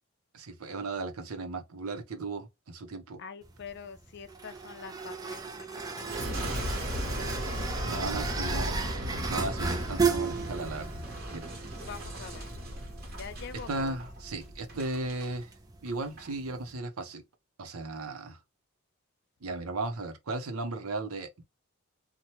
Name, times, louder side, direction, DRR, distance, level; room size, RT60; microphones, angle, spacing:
voice 1, 0.3-3.2 7.9-10.9 11.3-11.5 13.7-15.5 15.8-17.2 17.6-18.4 19.4-21.4, right 2 dB, 90° right, 0.7 m, -36 dB
voice 2, 3.2-6.7 11.9-12.5 13.1-14.0, left 5 dB, 55° left, 0.4 m, -45 dB
sound 1, 3.4-16.8, right 5 dB, 15° right, 0.4 m, -36 dB
Boom, 6.0-15.3 15.9-16.3, equal, 45° right, 1.0 m, -36 dB
2.8 x 2.2 x 2.9 m
head